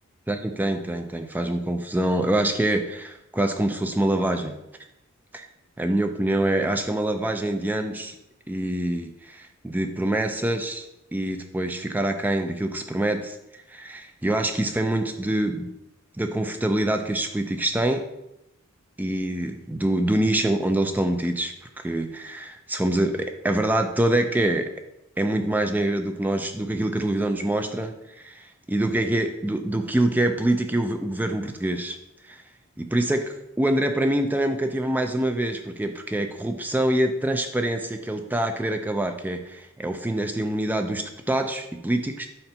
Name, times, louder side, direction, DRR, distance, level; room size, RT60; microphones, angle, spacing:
voice 1, 0.3-4.6 5.3-5.4 5.8-8.2 8.5-10.9 11.1-15.7 16.2-18.0 19.0-24.7 25.2-32.0 32.2-32.4 32.8-42.3, right 1 dB, 10° right, 6 dB, 0.3 m, -25 dB
4.3 x 4.1 x 5.5 m, 0.87 s
head